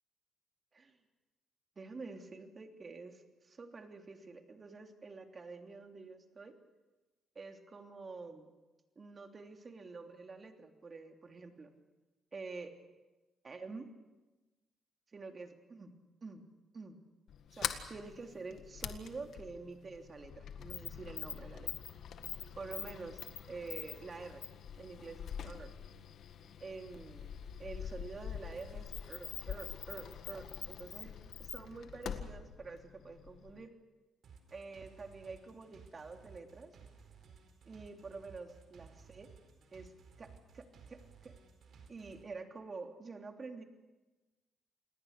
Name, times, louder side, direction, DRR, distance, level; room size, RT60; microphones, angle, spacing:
voice 1, 1.8-6.6 7.3-8.5 8.9-11.7 12.3-12.7 13.4-13.9 15.1-15.9 16.2-16.4 16.7-17.0 17.5-21.7 22.5-23.2 23.5-24.4 24.8-25.7 26.6-31.1 31.4-33.7 34.5-36.7 37.6-39.3 39.7-39.9 40.2-41.3 41.9-43.6, right 4 dB, 35° right, 4 dB, 3.1 m, -48 dB
Sliding door, 17.3-33.7, left 8 dB, 70° left, 1.8 m, -44 dB
sound 1, 34.2-42.2, right 6 dB, 65° right, 4.4 m, -58 dB
28.0 x 20.0 x 6.7 m, 1.1 s
cardioid pair, 90°, 0 cm